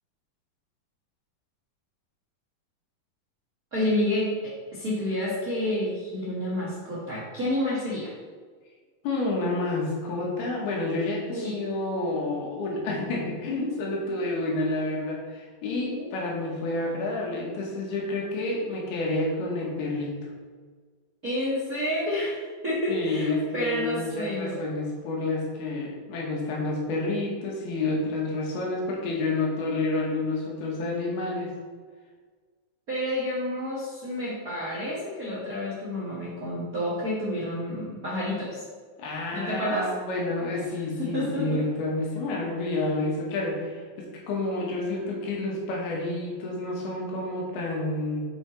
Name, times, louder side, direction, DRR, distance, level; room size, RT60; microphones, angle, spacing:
voice 1, 3.7-8.1 11.3-11.5 15.9-16.1 21.2-24.6 32.9-38.6 39.3-39.9 41.0-41.6, left 1 dB, 60° right, -7 dB, 0.9 m, -29 dB
voice 2, 9.0-20.1 22.9-31.5 39.0-48.3, left 2 dB, 90° left, -2 dB, 3.5 m, -29 dB
7.0 x 5.8 x 4.2 m, 1.5 s
omnidirectional pair, 4.4 m